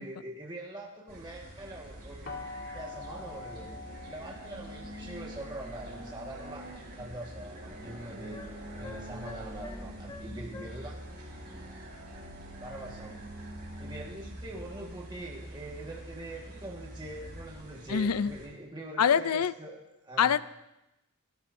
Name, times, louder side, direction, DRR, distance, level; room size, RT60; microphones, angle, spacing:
voice 1, 0.0-2.5 2.7-3.7 4.1-6.7 7.0-8.4 8.7-11.6 12.6-13.2 13.8-19.8 20.0-20.3, right 1 dB, 20° right, -2 dB, 1.7 m, -43 dB
sound 1, 1.1-18.5, right 1 dB, 45° right, 5.0 m, -45 dB
sound 2, 2.3-8.1, left 3 dB, 55° left, 2.4 m, -47 dB
sound 3, 6.4-6.8 8.3-10.9, left 3 dB, 20° left, 1.6 m, -49 dB
voice 2, 17.9-18.3 19.0-19.5 20.2-20.4, left 7 dB, 85° left, 16 dB, 0.5 m, -24 dB
28.5 x 13.0 x 2.7 m, 0.93 s
head